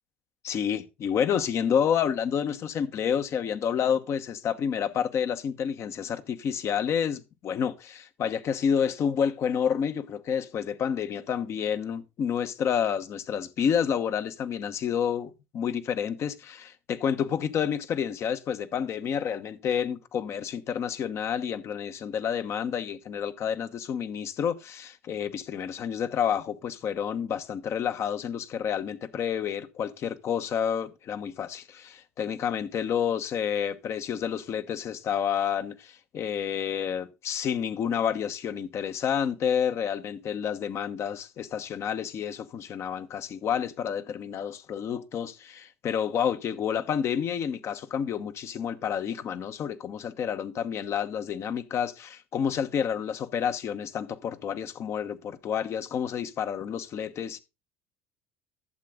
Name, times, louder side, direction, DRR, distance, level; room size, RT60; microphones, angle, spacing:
voice 1, 0.4-57.4, left 8 dB, 50° left, 1.1 m, -29 dB
11.5 x 7.7 x 3.7 m
hypercardioid pair, 65°, 6 cm